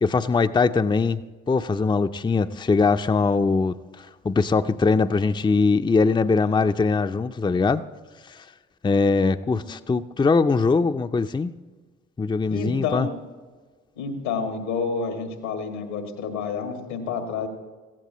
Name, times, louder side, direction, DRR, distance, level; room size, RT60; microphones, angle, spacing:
voice 1, 0.0-1.2 1.5-7.8 8.8-11.5 12.2-13.1, left 4 dB, 15° left, 9 dB, 0.5 m, -21 dB
voice 2, 12.5-13.1 14.0-17.5, left 5 dB, 85° left, 5 dB, 2.0 m, -29 dB
16.5 x 16.0 x 3.1 m, 1.4 s
hypercardioid pair, 45°, 32 cm